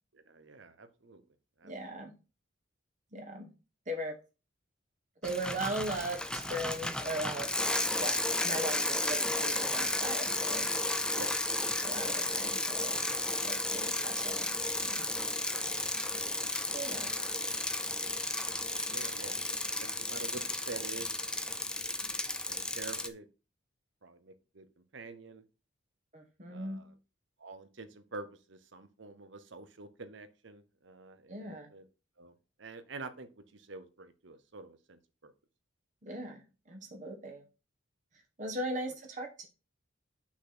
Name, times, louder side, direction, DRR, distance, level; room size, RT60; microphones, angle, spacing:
voice 1, 0.1-1.2 1.6-2.1 9.1-9.2 11.1-11.3 15.4-15.7 15.9-16.6 17.0-17.2 18.9-21.7 22.5-23.3 24.0-25.4 26.5-26.9 27.4-31.9 32.2-35.3, right 3 dB, 65° right, 11 dB, 0.9 m, -48 dB
voice 2, 1.6-2.1 3.1-3.5 3.9-4.1 5.2-7.5 8.0-10.7 11.8-13.0 13.3-14.5 14.8-15.1 16.7-17.1 26.1-26.8 31.3-31.7 36.0-37.4 38.4-39.5, right 1 dB, 35° right, 2 dB, 1.2 m, -39 dB
Bicycle, 5.2-23.1, left 2 dB, 5° left, 0.4 m, -33 dB
6.0 x 4.1 x 6.1 m, 0.31 s
head